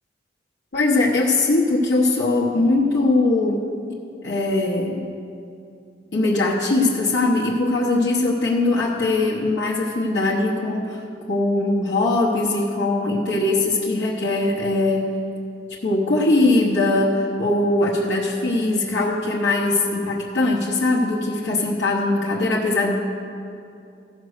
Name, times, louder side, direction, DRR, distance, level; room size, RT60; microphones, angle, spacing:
voice 1, 0.7-3.6 4.2-5.0 6.1-11.0 11.3-15.1 15.8-23.1, left 2 dB, 80° left, -5 dB, 1.1 m, -21 dB
15.0 x 5.2 x 6.5 m, 2.5 s
head